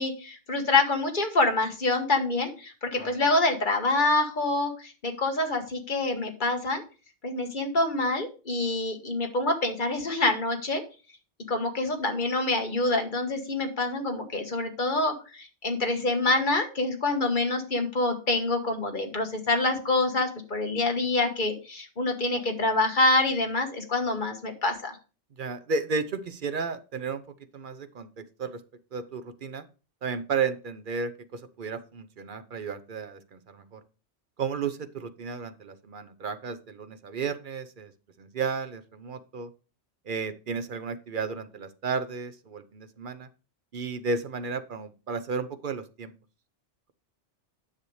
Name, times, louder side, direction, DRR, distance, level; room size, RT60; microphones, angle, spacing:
voice 1, 0.0-6.8 7.2-10.8 11.5-25.0, left 2 dB, 40° left, 4 dB, 1.5 m, -26 dB
voice 2, 25.4-27.2 27.5-28.6 28.9-29.6 30.0-33.8 34.4-37.9 38.2-39.5 40.1-43.3 43.7-46.1, right 5 dB, 50° right, 11 dB, 0.8 m, -33 dB
9.8 x 6.7 x 3.2 m, 0.34 s
omnidirectional pair, 1.2 m